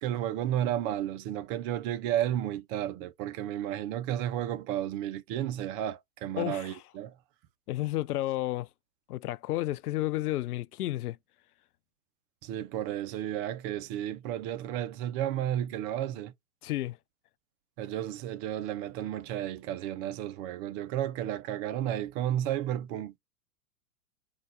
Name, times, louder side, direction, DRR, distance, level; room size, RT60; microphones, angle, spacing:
voice 1, 0.0-7.2 12.4-16.3 17.8-23.2, right 11 dB, 35° right, 0.6 m, -32 dB
voice 2, 6.4-6.7 7.7-8.7 9.1-11.2 16.6-17.0, left 16 dB, 80° left, 0.5 m, -31 dB
4.8 x 2.4 x 4.1 m
hypercardioid pair, 115°, 45 cm